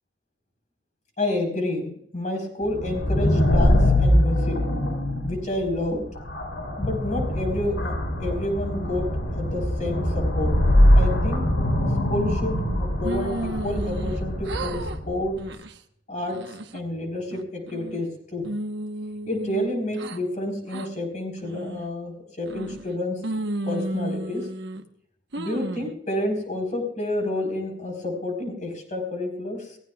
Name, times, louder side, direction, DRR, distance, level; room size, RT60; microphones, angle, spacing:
voice 1, 1.2-4.6 5.2-6.1 6.8-7.9 8.2-10.6 11.0-11.5 12.1-15.4 16.1-18.5 19.3-23.2 23.7-24.5 25.4-29.8, left 1 dB, 40° left, 4 dB, 4.3 m, -29 dB
sound 1, 2.7-15.3, left 1 dB, 85° left, 3.3 m, -22 dB
sound 2, 13.0-14.2 14.4-15.0 15.4-15.7 16.2-16.8 17.3-18.1 18.4-20.2 20.7-20.9 21.4-21.9 22.5-22.9 23.2-24.8 25.3-25.9, right 1 dB, 65° right, 1.1 m, -33 dB
22.0 x 16.5 x 2.4 m, 0.69 s
head